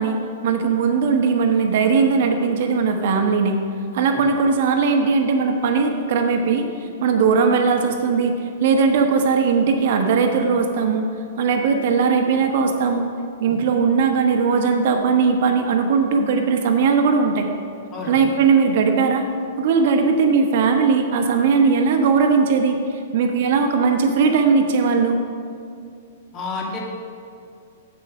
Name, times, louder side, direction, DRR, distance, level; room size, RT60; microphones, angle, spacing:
voice 1, 0.0-3.6 3.9-6.6 7.0-8.3 8.6-11.1 11.4-13.1 13.4-17.5 18.1-19.2 19.6-22.8 23.1-25.2, right 5 dB, 55° right, 4 dB, 1.1 m, -19 dB
voice 2, 26.3-26.8, left 4 dB, 35° left, -2 dB, 2.1 m, -30 dB
7.7 x 7.0 x 6.4 m, 2.4 s
hypercardioid pair, 110°, 0 cm